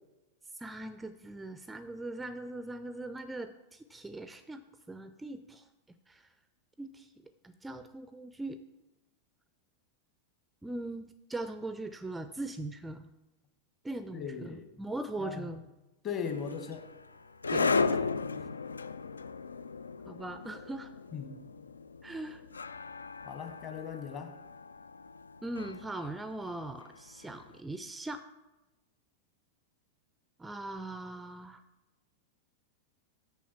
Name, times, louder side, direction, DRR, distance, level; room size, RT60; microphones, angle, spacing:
voice 1, 0.5-5.7 6.1-6.3 6.8-8.6 10.6-13.1 13.8-15.6 17.5-17.7 20.1-20.9 22.0-22.4 25.4-28.2 30.4-31.6, right 2 dB, 10° right, 11 dB, 0.4 m, -40 dB
voice 2, 14.1-14.7 15.2-15.5 16.0-16.9 17.6-18.5 21.1-21.4 23.2-24.3, left 6 dB, 30° left, 6 dB, 1.2 m, -39 dB
sound 1, 16.3-27.4, left 4 dB, 75° left, 0.3 m, -36 dB
7.1 x 6.0 x 7.2 m, 1.1 s
figure-of-eight pair, 90°, 0 cm